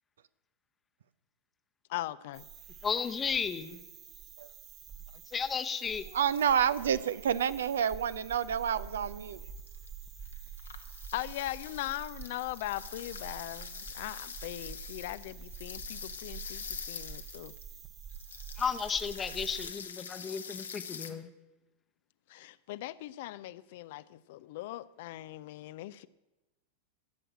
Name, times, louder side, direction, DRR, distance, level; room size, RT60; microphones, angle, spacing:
voice 1, 1.9-2.4 11.1-17.5 21.0-21.2 22.3-26.1, left 15 dB, 50° left, 0.4 m, -40 dB
sound 1, 2.3-19.7, right 7 dB, 30° right, 1.0 m, -47 dB
voice 2, 2.8-3.8 5.3-6.1 18.6-21.3, left 6 dB, 20° left, 0.9 m, -33 dB
voice 3, 6.1-9.4, right 8 dB, 65° right, 0.5 m, -29 dB
sound 2, 6.3-7.1 8.7-8.8 9.3-9.4 9.7-9.9 10.2-17.7 18.1-21.1, left 7 dB, 70° left, 1.1 m, -45 dB
15.5 x 7.7 x 7.5 m
figure-of-eight pair, 90°, 0 cm